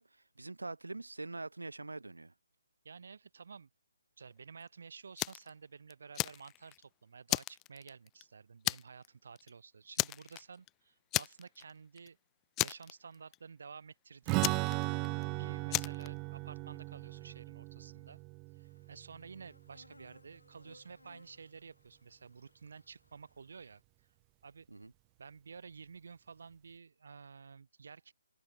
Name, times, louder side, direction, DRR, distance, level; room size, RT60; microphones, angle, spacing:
voice 1, 0.0-2.3 24.7-24.9, right 2 dB, 70° right, 2.0 m, -44 dB
voice 2, 2.8-3.7 4.2-12.2 12.6-15.0 15.4-18.2 18.6-23.8 24.4-24.7 25.2-28.1, right 5 dB, 55° right, 5.7 m, -52 dB
Fire, 5.2-5.5 5.9-6.8 7.3-8.2 8.7-9.1 9.4-9.5 10.0-10.7 11.1-11.7 12.0-12.1 12.6-13.4 14.4-15.2 15.7-16.1, left 19 dB, 15° left, 0.4 m, -34 dB
Strum, 14.3-19.9, right 29 dB, 20° right, 0.8 m, -37 dB
sound 1, 18.6-23.8, left 2 dB, 80° left, 6.1 m, -64 dB
open air
figure-of-eight pair, 140°, 0 cm